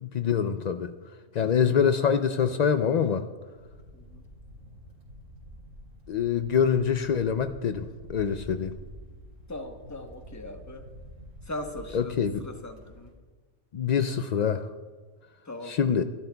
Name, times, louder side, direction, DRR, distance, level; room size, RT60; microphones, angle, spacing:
voice 1, 0.0-0.9 1.3-3.3 6.1-8.7 11.9-12.5 13.7-14.7 15.6-16.0, left 7 dB, 70° left, 9 dB, 0.4 m, -25 dB
sound 1, 3.6-13.1, equal, 85° right, 3.0 m, -47 dB
voice 2, 3.9-4.2 9.5-10.9 11.4-13.1 15.4-15.8, left 1 dB, 15° left, 5 dB, 0.9 m, -39 dB
24.5 x 11.5 x 2.3 m, 1.4 s
omnidirectional pair, 1.3 m